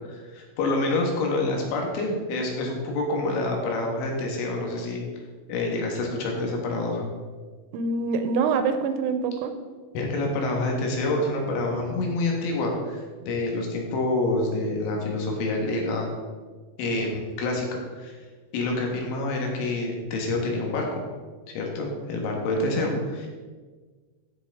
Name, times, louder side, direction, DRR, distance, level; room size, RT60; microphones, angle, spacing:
voice 1, 0.0-5.2 5.5-7.1 10.0-16.1 16.8-18.2 18.5-21.0 21.6-23.3, left 2 dB, 75° left, 0 dB, 3.7 m, -27 dB
voice 2, 7.7-9.5 22.6-23.0, right 5 dB, 90° right, 8 dB, 3.4 m, -26 dB
12.5 x 6.5 x 3.5 m, 1.4 s
omnidirectional pair, 5.7 m